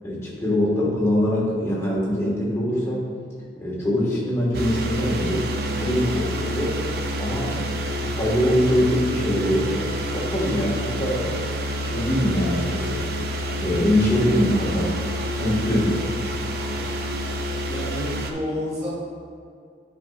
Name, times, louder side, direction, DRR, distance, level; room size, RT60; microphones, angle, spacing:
voice 1, 0.0-3.1 3.6-5.4 5.8-6.8 7.2-9.7 10.1-11.4 11.8-13.0 13.6-14.9 15.4-16.0, equal, 15° left, -6 dB, 1.7 m, -23 dB
sound 1, 4.5-18.3, equal, 55° right, 0.6 m, -28 dB
voice 2, 17.7-18.9, left 1 dB, 20° right, -9 dB, 1.5 m, -30 dB
10.5 x 5.6 x 2.5 m, 2.2 s
head